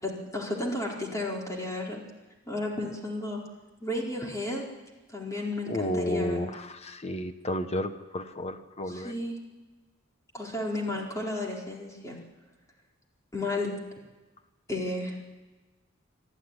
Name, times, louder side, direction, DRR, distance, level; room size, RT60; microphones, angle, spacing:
voice 1, 0.0-2.0 2.5-3.4 3.8-4.6 5.1-6.4 8.9-9.4 10.3-12.2 13.3-13.8 14.7-15.2, left 2 dB, 15° left, -2 dB, 4.5 m, -33 dB
voice 2, 5.7-9.1, left 1 dB, 30° left, 9 dB, 1.2 m, -32 dB
24.5 x 14.5 x 9.9 m, 1.2 s
head